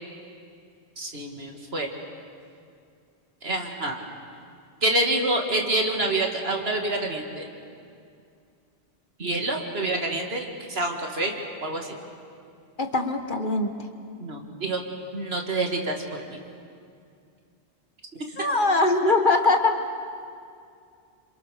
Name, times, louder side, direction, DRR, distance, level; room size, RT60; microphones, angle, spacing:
voice 1, 1.0-1.9 3.4-4.0 4.8-7.5 9.2-11.3 11.6-12.0 14.2-14.8 15.1-16.0 16.3-16.4 18.3-18.4, right 2 dB, 70° right, 2 dB, 2.7 m, -27 dB
voice 2, 12.8-13.7 18.4-19.8, left 3 dB, 50° left, 5 dB, 1.7 m, -22 dB
27.5 x 27.0 x 6.7 m, 2.4 s
omnidirectional pair, 1.1 m